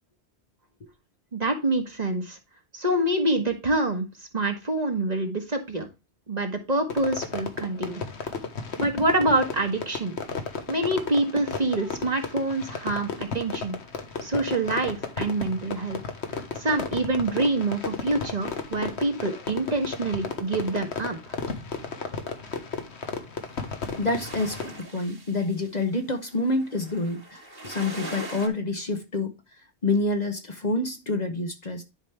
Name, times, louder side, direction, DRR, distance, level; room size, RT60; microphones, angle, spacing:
voice 1, 1.3-2.4 2.7-5.9 6.3-8.0 8.8-10.2 10.7-13.8 14.2-16.0 16.6-21.3, right 2 dB, 40° right, 1.6 m, -26 dB
Fireworks, 6.9-24.8, left 5 dB, 80° left, 1.5 m, -34 dB
sound 1, 23.4-28.5, right 1 dB, 55° right, 2.2 m, -41 dB
voice 2, 24.0-29.3 29.8-31.8, left 2 dB, 40° left, 1.0 m, -27 dB
10.5 x 5.1 x 3.3 m
omnidirectional pair, 1.1 m